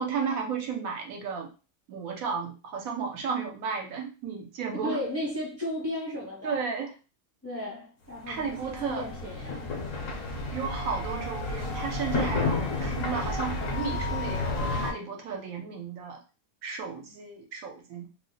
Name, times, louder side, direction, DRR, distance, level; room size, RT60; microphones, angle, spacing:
voice 1, 0.0-1.5 1.9-5.0 6.4-6.9 8.3-9.1 10.5-16.2 16.6-18.1, right 5 dB, 70° right, 1.1 m, -33 dB
voice 2, 4.7-6.6 7.4-10.2, left 1 dB, 15° left, 0.6 m, -35 dB
sound 1, 8.2-14.9, left 2 dB, 65° left, 1.1 m, -31 dB
2.7 x 2.1 x 3.8 m
omnidirectional pair, 1.5 m